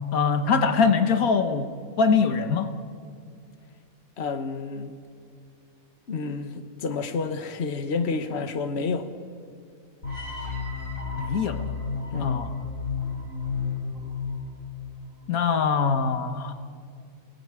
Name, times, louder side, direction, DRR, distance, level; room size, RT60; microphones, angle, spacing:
voice 1, 0.1-2.7 11.2-11.6 12.2-12.5 15.3-16.5, left 5 dB, 80° left, 9 dB, 1.6 m, -23 dB
voice 2, 4.2-5.0 6.1-9.1 12.1-12.5, left 4 dB, 50° left, 8 dB, 1.5 m, -30 dB
sound 1, 10.0-15.1, left 5 dB, 65° left, 4.0 m, -32 dB
28.5 x 18.0 x 8.9 m, 2.4 s
omnidirectional pair, 1.5 m